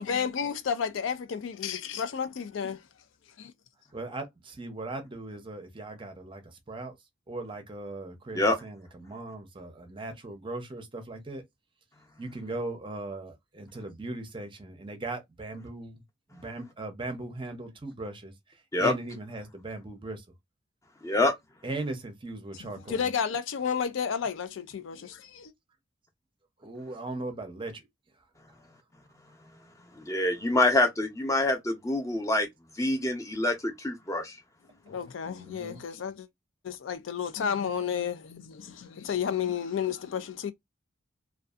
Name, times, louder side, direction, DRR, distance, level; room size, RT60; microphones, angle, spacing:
voice 1, 0.0-2.8 3.4-3.5 22.6-25.5 34.9-36.3 36.6-40.5, left 7 dB, 85° left, 0.4 m, -32 dB
voice 2, 3.9-7.0 7.3-11.4 12.2-16.0 16.3-20.2 21.6-23.0 26.6-27.8 35.2-35.8, right 2 dB, 25° right, 0.6 m, -38 dB
voice 3, 30.0-32.5 32.8-34.4, left 2 dB, 15° left, 0.6 m, -26 dB
2.5 x 2.3 x 2.3 m
head